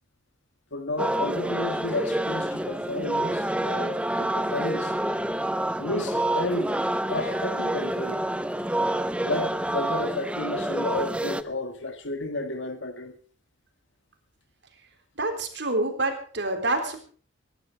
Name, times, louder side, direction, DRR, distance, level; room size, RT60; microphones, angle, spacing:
voice 1, 0.7-4.9 5.8-6.8 7.1-8.2 9.2-13.2, left 2 dB, 70° left, 2.0 m, -32 dB
sound 1, 1.0-11.4, right 1 dB, 5° right, 0.6 m, -28 dB
voice 2, 15.2-17.0, right 2 dB, 65° right, 3.5 m, -27 dB
21.5 x 11.5 x 4.6 m
head